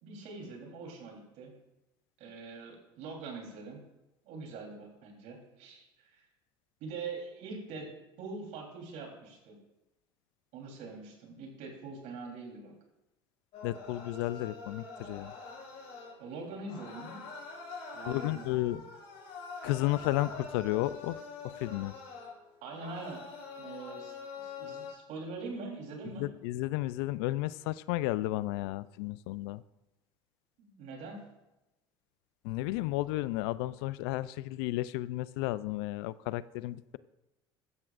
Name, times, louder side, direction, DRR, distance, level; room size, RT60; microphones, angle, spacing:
voice 1, 0.0-1.5 2.2-3.8 4.2-6.3 6.8-7.9 8.2-9.6 10.5-12.7 16.2-17.2 17.9-18.8 22.6-23.2 23.6-26.3 30.6-31.2, right 4 dB, 65° right, 1 dB, 3.7 m, -43 dB
sound 1, 13.5-16.3 16.7-24.9, left 4 dB, 60° left, 5.0 m, -45 dB
voice 2, 13.6-15.3 18.1-18.8 19.6-21.9 26.2-29.6 32.4-37.0, left 17 dB, 80° left, 17 dB, 0.5 m, -33 dB
15.5 x 12.0 x 2.5 m, 0.96 s
supercardioid pair, 85°, 13 cm